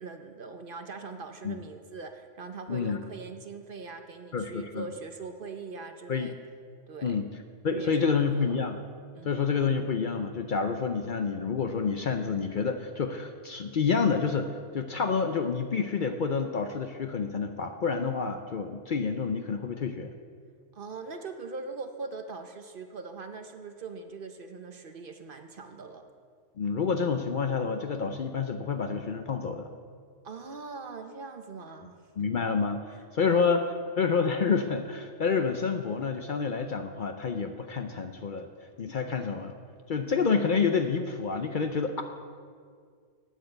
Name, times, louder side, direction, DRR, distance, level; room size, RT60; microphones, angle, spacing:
voice 1, 0.0-6.4 6.9-7.2 7.7-8.6 9.1-9.5 20.7-26.0 30.2-32.0 33.2-33.6, right 4 dB, 50° right, 7 dB, 0.8 m, -41 dB
voice 2, 2.7-3.0 4.3-4.9 6.1-6.3 7.0-7.3 7.6-8.8 9.2-20.1 26.6-29.7 32.2-38.5 38.8-39.6 39.9-42.0, left 5 dB, 55° left, 6 dB, 0.6 m, -28 dB
9.2 x 9.0 x 7.9 m, 2.1 s
omnidirectional pair, 1.2 m